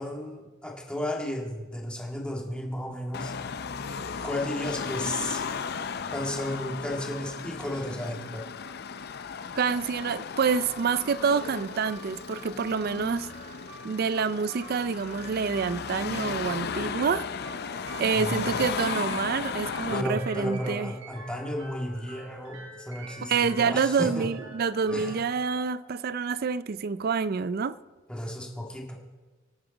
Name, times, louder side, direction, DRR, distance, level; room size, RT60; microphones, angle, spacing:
voice 1, 0.0-3.3 4.2-5.4 6.1-8.5 18.1-18.5 19.9-24.3 24.9-25.1 28.1-29.0, left 1 dB, 5° left, 1.9 m, -33 dB
Car passing by / Traffic noise roadway noise / Engine, 3.1-20.0, left 6 dB, 55° left, 0.5 m, -35 dB
voice 2, 9.5-13.3 13.8-17.3 18.0-20.9 23.3-27.8, right 5 dB, 50° right, 0.4 m, -27 dB
sound 1, 10.5-26.5, right 2 dB, 75° right, 4.0 m, -46 dB
25.0 x 8.9 x 3.9 m
head